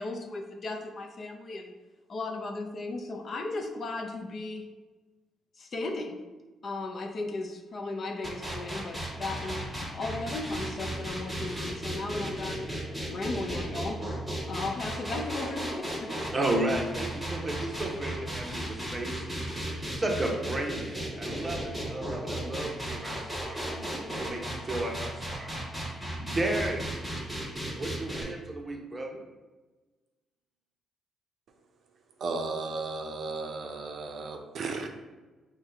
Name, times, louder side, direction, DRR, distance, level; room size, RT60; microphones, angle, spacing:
voice 1, 0.0-1.7 2.1-4.7 5.6-6.2 6.6-12.7 13.1-14.0 14.5-16.1, left 2 dB, 45° left, 4 dB, 0.5 m, -36 dB
sound 1, 8.2-28.2, right 1 dB, ahead, 1.2 m, -35 dB
voice 2, 16.3-19.2 19.9-25.5 26.2-26.9 27.7-29.2, right 1 dB, 20° right, 0 dB, 0.8 m, -33 dB
voice 3, 32.2-34.9, right 3 dB, 60° right, 3 dB, 0.5 m, -34 dB
4.8 x 2.2 x 3.3 m, 1.2 s
cardioid pair, 90°, 0 cm